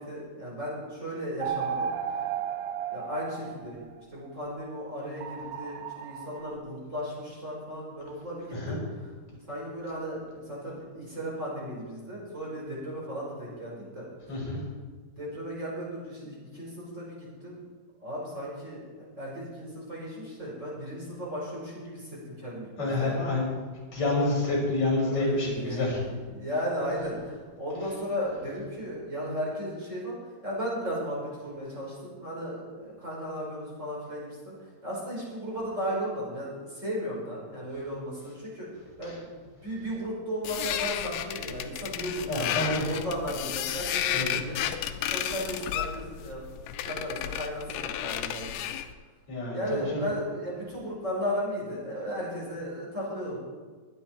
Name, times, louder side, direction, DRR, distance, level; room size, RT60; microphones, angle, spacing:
voice 1, 0.0-2.3 2.9-3.8 4.1-9.1 9.5-14.4 15.2-17.6 18.0-23.3 25.0-38.7 39.0-44.6 45.1-46.4 46.7-48.6 49.5-53.4, equal, 20° right, -5 dB, 5.0 m, -35 dB
sound 1, 1.4-4.0 5.2-6.5, right 8 dB, 80° right, 2.7 m, -34 dB
voice 2, 14.3-14.6 22.8-23.7 23.9-26.0 42.3-42.8 44.1-44.4 49.3-50.0, left 2 dB, 45° left, -4 dB, 6.3 m, -28 dB
sound 2, 40.4-48.9, left 11 dB, 90° left, 2.8 m, -32 dB
22.5 x 9.7 x 4.5 m, 1.5 s
omnidirectional pair, 4.6 m